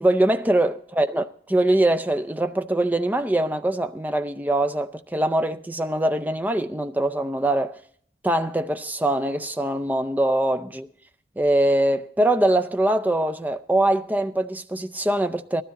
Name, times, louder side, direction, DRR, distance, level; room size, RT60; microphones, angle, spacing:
voice 1, 0.0-7.8 8.2-10.9 11.4-15.6, right 1 dB, 10° right, 0.4 m, -23 dB
18.5 x 13.0 x 4.0 m
head